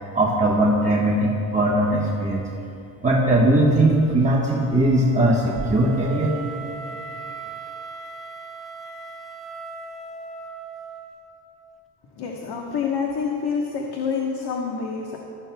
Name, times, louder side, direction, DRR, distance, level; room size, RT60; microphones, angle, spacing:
voice 1, 0.1-2.5 3.0-6.4, right 1 dB, 20° right, -4 dB, 1.2 m, -19 dB
Wind instrument woodwind instrument, 3.5-11.5, right 3 dB, ahead, 0.9 m, -39 dB
voice 2, 12.2-15.2, left 6 dB, 75° left, 0 dB, 1.3 m, -27 dB
17.5 x 13.5 x 2.3 m, 2.7 s
cardioid pair, 100°, 40 cm